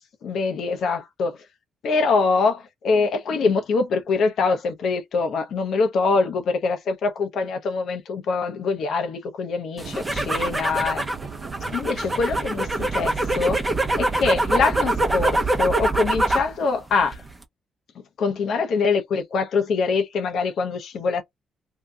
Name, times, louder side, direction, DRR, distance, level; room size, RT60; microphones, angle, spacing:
voice 1, 0.2-1.4 1.8-11.1 11.7-13.6 14.0-17.2 18.2-21.2, left 4 dB, 65° left, 0.8 m, -24 dB
sound 1, 9.8-16.5 16.9-17.4, right 2 dB, 15° right, 0.8 m, -24 dB
sound 2, 9.8-15.6, right 6 dB, 55° right, 0.9 m, -37 dB
2.8 x 2.3 x 3.5 m
cardioid pair, 90°, 0 cm